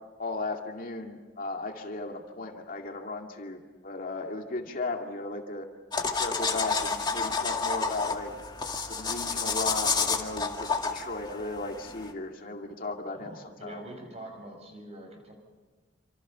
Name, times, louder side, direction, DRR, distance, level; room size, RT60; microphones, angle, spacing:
voice 1, 0.2-5.7 6.1-8.3 8.8-13.8, left 2 dB, 50° left, 3 dB, 2.3 m, -36 dB
sound 1, 5.9-12.1, left 4 dB, 25° left, 2.2 m, -30 dB
voice 2, 13.2-15.3, right 1 dB, 35° right, 3 dB, 7.3 m, -44 dB
28.0 x 27.0 x 5.7 m, 1.3 s
head